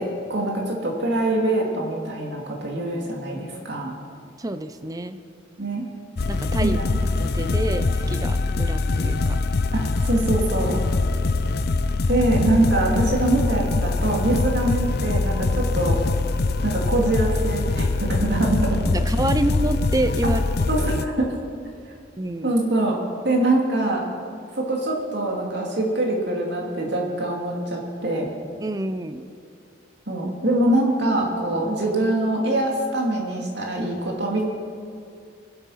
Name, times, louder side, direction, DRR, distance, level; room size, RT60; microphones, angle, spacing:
voice 1, 0.0-3.9 5.6-5.9 6.6-7.0 9.7-10.8 12.1-16.0 16.6-18.8 20.7-21.3 22.4-23.0 23.2-24.0 24.5-28.3 30.1-34.4, right 1 dB, 55° right, -1 dB, 2.7 m, -24 dB
voice 2, 4.4-5.2 6.3-6.8 7.2-9.4 18.9-20.7 22.2-22.6 28.6-29.2, right 1 dB, 20° right, 10 dB, 0.5 m, -28 dB
sound 1, 6.2-21.1, left 3 dB, 50° left, 0.5 m, -23 dB
23.5 x 8.4 x 5.8 m, 2.3 s
head